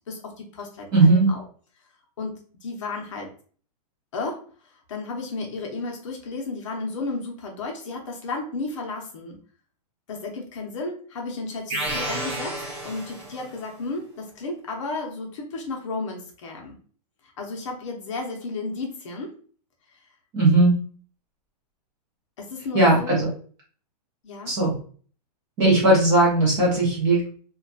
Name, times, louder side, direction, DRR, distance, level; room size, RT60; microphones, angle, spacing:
voice 1, 0.1-1.4 2.2-3.3 4.1-4.5 4.9-9.4 10.1-16.8 17.4-19.4 22.4-23.2 24.2-24.5, left 3 dB, 50° left, 1 dB, 0.7 m, -33 dB
voice 2, 0.9-1.3 20.3-20.7 22.7-23.3 24.5-24.8 25.6-27.3, right 2 dB, 15° right, -4 dB, 0.5 m, -18 dB
sound 1, 11.7-13.6, right 1 dB, 45° right, 0.9 m, -31 dB
2.7 x 2.2 x 2.4 m, 0.43 s
hypercardioid pair, 175°, 21 cm